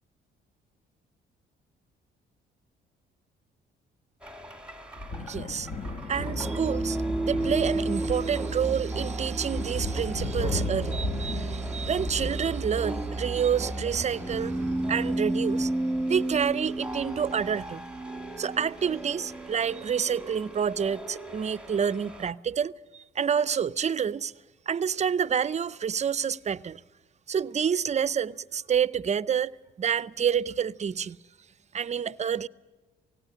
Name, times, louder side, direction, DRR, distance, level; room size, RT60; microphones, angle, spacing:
sound 1, 4.2-22.3, right 2 dB, 5° right, 1.7 m, -33 dB
sound 2, 5.0-17.2, left 3 dB, 35° left, 1.1 m, -38 dB
voice 1, 5.2-5.7 6.1-14.6 14.9-15.7 16.1-17.8 18.4-24.3 24.7-26.8 27.3-29.5 29.8-31.2 31.7-32.5, right 7 dB, 35° right, 0.5 m, -28 dB
18.0 x 16.5 x 8.7 m
cardioid pair, 90°, 20 cm